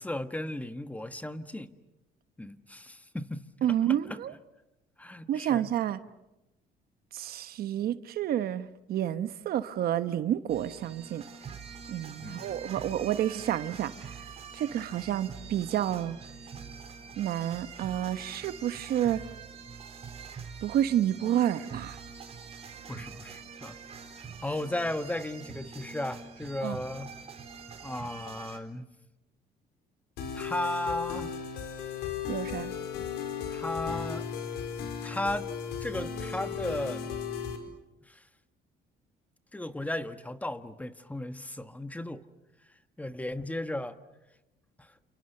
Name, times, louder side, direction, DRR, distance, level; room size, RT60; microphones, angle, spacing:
voice 1, 0.0-1.7 2.4-3.4 3.9-4.0 5.0-5.7 12.2-12.5 22.9-23.8 24.4-27.1 27.8-28.9 30.3-31.4 33.5-34.2 35.0-35.5 35.8-37.2 38.0-38.2 39.5-42.2 43.0-44.0 44.8-44.9, left 1 dB, 10° left, 1.4 m, -35 dB
voice 2, 3.6-4.3 5.3-6.0 7.1-11.2 11.9-14.2 14.5-16.2 17.2-19.2 20.6-22.0 26.6-26.8 32.3-32.7, right 11 dB, 65° right, 1.1 m, -29 dB
sound 1, 10.5-28.6, right 5 dB, 35° right, 4.4 m, -45 dB
sound 2, 30.2-37.6, left 7 dB, 75° left, 4.9 m, -36 dB
30.0 x 29.0 x 6.8 m
cardioid pair, 110°, 17 cm